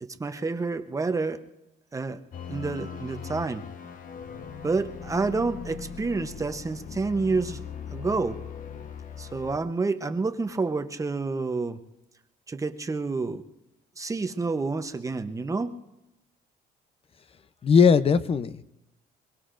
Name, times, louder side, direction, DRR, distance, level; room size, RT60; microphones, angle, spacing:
voice 1, 0.0-1.4 1.9-2.2 2.5-3.6 4.6-7.6 7.9-8.4 9.2-11.8 12.5-13.4 14.0-15.8, right 3 dB, 20° right, 9 dB, 0.8 m, -29 dB
sound 1, 2.3-9.6, left 7 dB, 55° left, 1.1 m, -40 dB
voice 2, 17.6-18.6, left 6 dB, 35° left, 14 dB, 0.7 m, -19 dB
23.0 x 23.0 x 2.6 m, 0.92 s
cardioid pair, 110°, 17 cm